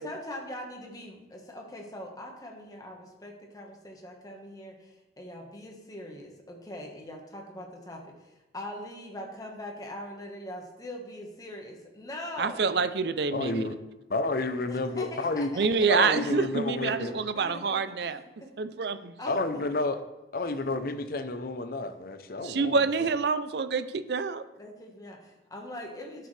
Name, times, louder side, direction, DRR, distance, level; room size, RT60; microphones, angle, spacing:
voice 1, 0.0-12.6 14.7-15.9 16.9-18.5 19.2-19.6 20.4-20.6 21.8-21.9 24.6-26.3, left 1 dB, 20° left, 0 dB, 1.4 m, -42 dB
voice 2, 12.4-13.6 15.5-18.2 18.6-19.1 22.4-24.4, right 5 dB, 65° right, 12 dB, 0.5 m, -27 dB
voice 3, 13.3-13.8 14.1-15.5 15.9-17.2 19.3-20.0 20.3-22.8, left 2 dB, 55° left, 9 dB, 0.7 m, -30 dB
11.5 x 6.7 x 3.3 m, 1.0 s
head